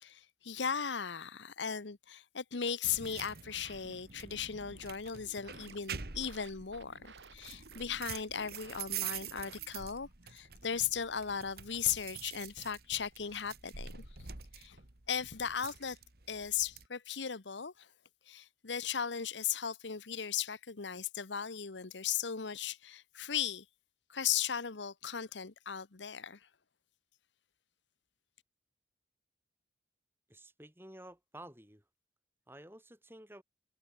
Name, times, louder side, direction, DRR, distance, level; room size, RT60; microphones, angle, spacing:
voice 1, 0.0-14.3 14.5-14.8 15.1-16.0 16.3-17.9 18.3-23.6 24.1-26.5, left 8 dB, 80° left, 1.0 m, -37 dB
sound 1, 2.8-16.9, right 8 dB, 55° right, 1.9 m, -46 dB
sound 2, 5.1-10.1, right 4 dB, 75° right, 2.8 m, -57 dB
voice 2, 30.3-31.8 32.5-33.4, right 1 dB, 10° right, 7.1 m, -52 dB
head